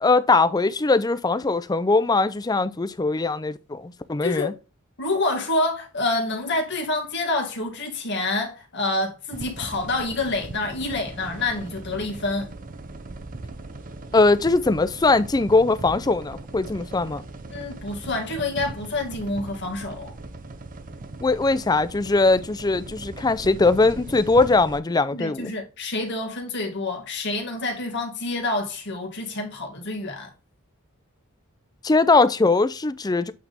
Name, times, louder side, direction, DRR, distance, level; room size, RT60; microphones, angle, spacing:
voice 1, 0.0-4.5 14.1-17.2 21.2-25.5 31.8-33.3, left 3 dB, 20° left, 0.4 m, -21 dB
voice 2, 5.0-12.5 17.5-20.1 25.1-30.3, left 2 dB, 55° left, 1.9 m, -27 dB
sound 1, 9.3-24.8, right 2 dB, 40° right, 0.7 m, -39 dB
8.6 x 3.5 x 4.1 m
head